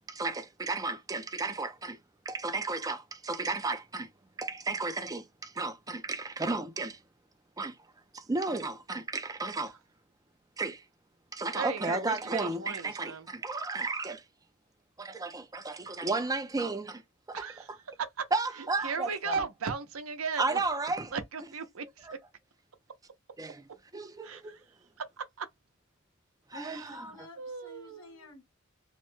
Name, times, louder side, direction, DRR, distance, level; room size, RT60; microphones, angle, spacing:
voice 1, 0.1-2.0 2.3-4.1 4.4-7.0 7.6-7.7 8.1-9.8 10.6-10.8 11.3-14.2 15.0-17.0 17.3-17.8 18.3-19.3 20.4-21.1 22.0-22.1 23.4-24.6 26.5-27.0, right 3 dB, 15° right, 0.5 m, -33 dB
voice 2, 11.5-13.3 17.3-17.7 18.8-20.6 21.1-22.1 24.2-24.6 25.2-25.5 26.7-26.8 27.4-28.2, right 5 dB, 90° right, 0.7 m, -36 dB
voice 3, 26.5-28.4, left 2 dB, 80° left, 1.5 m, -49 dB
3.1 x 2.2 x 3.1 m
head